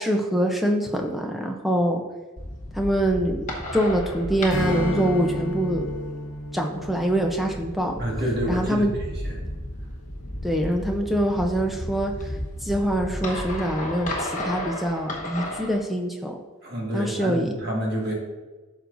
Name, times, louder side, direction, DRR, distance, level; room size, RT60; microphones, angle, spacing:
voice 1, 0.0-2.0 2.7-3.4 3.7-5.9 6.5-8.0 8.5-8.9 10.4-12.1 12.6-16.4 16.9-17.5, equal, ahead, 1 dB, 0.7 m, -24 dB
sound 1, 2.4-15.8, left 1 dB, 35° left, 1.2 m, -34 dB
Strum, 4.5-9.3, equal, 65° left, 1.4 m, -33 dB
voice 2, 8.0-9.4 16.6-18.1, right 1 dB, 50° right, -2 dB, 1.8 m, -28 dB
12.5 x 4.7 x 2.6 m, 1.2 s
head